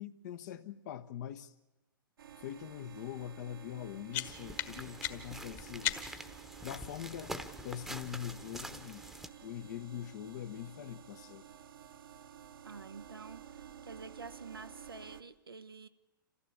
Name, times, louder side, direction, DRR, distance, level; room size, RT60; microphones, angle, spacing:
voice 1, 0.0-1.5 2.4-5.9 6.6-9.0 9.4-11.4, left 10 dB, 50° left, 1.1 m, -43 dB
sound 1, 2.2-15.2, right 9 dB, 75° right, 1.5 m, -52 dB
sound 2, 3.7-6.4, left 13 dB, 35° left, 1.7 m, -39 dB
sound 3, 4.2-9.3, right 1 dB, ahead, 1.1 m, -46 dB
voice 2, 12.6-15.9, right 4 dB, 90° right, 1.2 m, -48 dB
27.0 x 15.5 x 8.6 m
hypercardioid pair, 115°, 12 cm